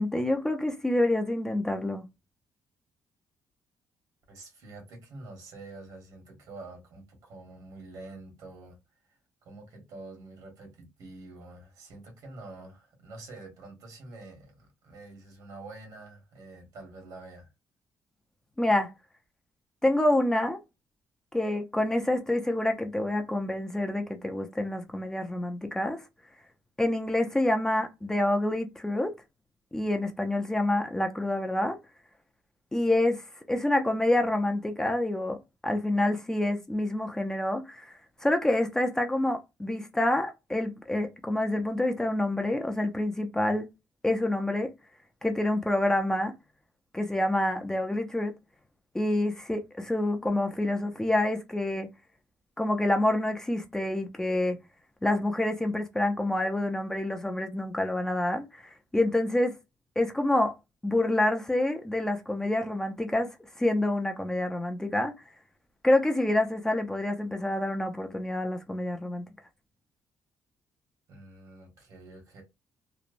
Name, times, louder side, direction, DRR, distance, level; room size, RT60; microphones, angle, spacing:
voice 1, 0.0-2.1 18.6-18.9 19.8-20.6 21.3-26.0 26.8-29.1 29.7-31.8 32.7-43.7 44.0-44.7 45.2-46.3 46.9-48.3 48.9-51.9 52.6-54.6 55.0-59.5 60.0-60.5 60.8-65.1 65.8-69.3, left 1 dB, 10° left, 0.4 m, -27 dB
voice 2, 4.3-8.8 9.4-17.5 71.1-72.4, right 2 dB, 75° right, 1.4 m, -47 dB
3.0 x 2.1 x 2.5 m
cardioid pair, 140°, 6 cm